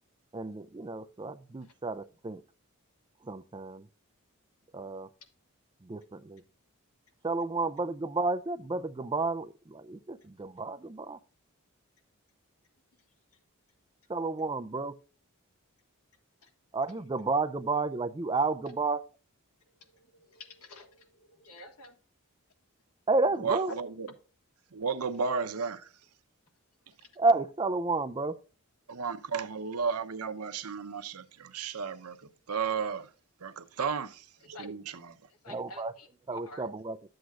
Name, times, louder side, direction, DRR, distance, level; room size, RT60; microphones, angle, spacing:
voice 1, 0.3-2.4 3.2-3.9 4.7-5.1 5.8-6.4 7.2-11.2 14.1-15.0 16.7-19.0 23.1-23.7 27.2-28.4 35.5-35.9 36.3-37.0, right 3 dB, 20° right, 0.4 m, -31 dB
voice 2, 20.3-20.9 21.4-21.9 34.5-34.7 35.4-36.1 36.3-36.6, left 1 dB, 90° left, 1.8 m, -48 dB
voice 3, 23.4-24.1 24.7-25.9 28.9-33.1 33.4-35.2, right 5 dB, 85° right, 0.8 m, -34 dB
11.5 x 7.8 x 2.4 m
head